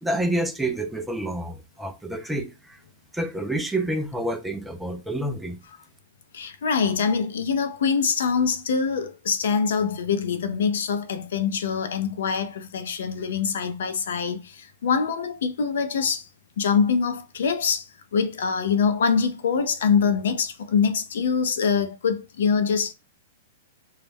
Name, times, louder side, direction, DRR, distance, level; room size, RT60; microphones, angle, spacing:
voice 1, 0.0-2.8 3.1-5.6, right 1 dB, 5° right, 0.3 m, -28 dB
voice 2, 6.3-16.3 16.6-22.9, left 6 dB, 75° left, 0.4 m, -24 dB
2.2 x 2.1 x 3.3 m
hypercardioid pair, 165°, 0 cm